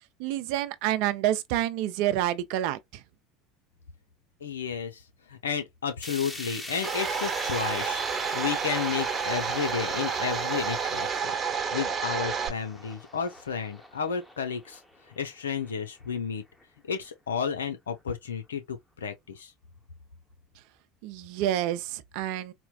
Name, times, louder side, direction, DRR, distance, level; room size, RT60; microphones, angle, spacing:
voice 1, 0.2-3.0 21.0-22.5, right 12 dB, 60° right, 0.6 m, -28 dB
voice 2, 4.4-5.0 5.3-8.0 8.3-14.8 15.1-16.4 16.8-19.5, left 7 dB, 80° left, 0.8 m, -32 dB
sound 1, 6.0-16.2 16.6-16.7 17.1-17.2 18.0-18.1, left 1 dB, 5° left, 1.1 m, -42 dB
Domestic sounds home sounds, 6.8-12.5, right 6 dB, 30° right, 1.0 m, -30 dB
4.3 x 2.3 x 2.4 m
hypercardioid pair, 75°, 0 cm